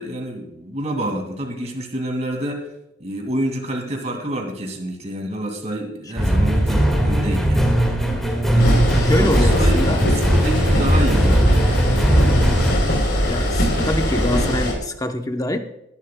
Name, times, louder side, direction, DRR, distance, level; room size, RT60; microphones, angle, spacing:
voice 1, 0.0-2.7 3.0-7.8 8.3-11.9, right 1 dB, 35° right, 2.3 m, -28 dB
sound 1, 6.2-12.7, equal, ahead, 1.9 m, -18 dB
sound 2, 8.6-14.7, equal, 65° left, 3.6 m, -21 dB
voice 2, 8.9-10.0 13.2-15.6, left 1 dB, 20° left, 0.8 m, -24 dB
20.0 x 11.0 x 2.3 m
head